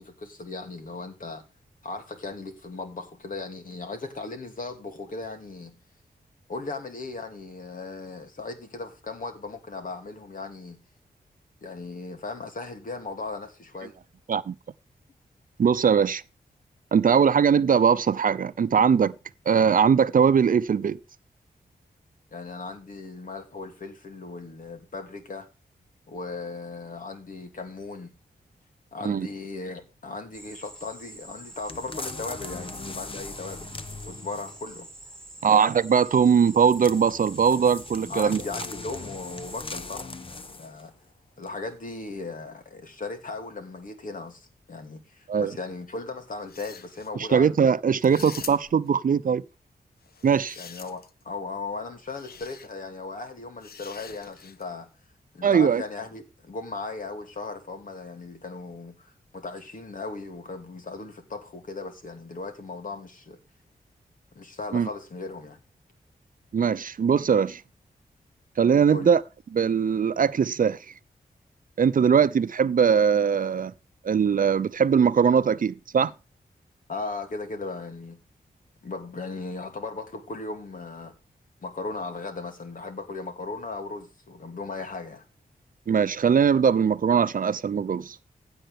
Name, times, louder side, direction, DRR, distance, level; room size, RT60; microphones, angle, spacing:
voice 1, 0.0-1.4 1.8-5.7 6.5-10.8 11.6-13.9 22.3-25.5 26.1-28.1 28.9-33.7 34.0-34.9 38.1-40.9 41.4-47.7 50.6-54.9 55.3-63.4 64.3-65.6 68.9-69.1 76.9-78.2 78.8-81.1 81.6-85.2, left 3 dB, 60° left, 2.9 m, -37 dB
voice 2, 15.6-16.2 16.9-19.1 19.5-21.0 29.0-29.3 35.4-38.4 45.3-45.5 47.1-49.4 50.2-50.6 55.4-55.8 64.7-64.9 66.5-67.6 68.6-69.2 69.5-70.8 71.8-73.7 74.0-76.1 85.9-88.2, right 7 dB, 65° right, 0.7 m, -21 dB
sound 1, 30.3-39.6, right 1 dB, 5° left, 6.3 m, -46 dB
sound 2, 31.7-34.7 36.7-40.9 41.4-41.5, left 3 dB, 35° left, 1.1 m, -39 dB
sound 3, 46.4-47.1 48.0-48.9 50.0-51.2 52.1-52.7 53.6-54.7, left 6 dB, 80° left, 1.1 m, -44 dB
16.0 x 8.0 x 3.6 m
wide cardioid pair, 95°, 16 cm